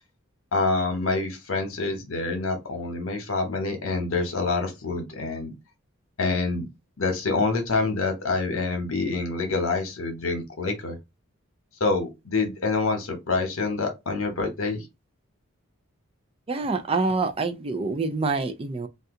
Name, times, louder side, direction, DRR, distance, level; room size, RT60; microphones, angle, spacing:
voice 1, 0.5-5.5 6.2-6.6 7.0-11.0 11.8-14.8, left 3 dB, 80° left, 1.0 m, -26 dB
voice 2, 16.5-18.9, right 3 dB, 25° right, 0.4 m, -26 dB
2.7 x 2.3 x 3.6 m
head